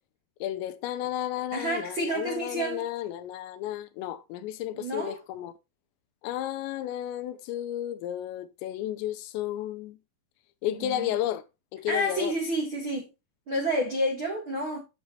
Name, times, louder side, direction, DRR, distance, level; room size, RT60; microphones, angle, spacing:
voice 1, 0.4-5.5 6.2-10.0 10.6-11.4 11.7-12.3, left 12 dB, 80° left, 2.7 m, -32 dB
voice 2, 1.5-2.8 4.7-5.2 10.8-11.1 11.8-13.1 13.5-14.8, equal, 85° right, 1.1 m, -29 dB
8.7 x 7.2 x 2.9 m
omnidirectional pair, 5.3 m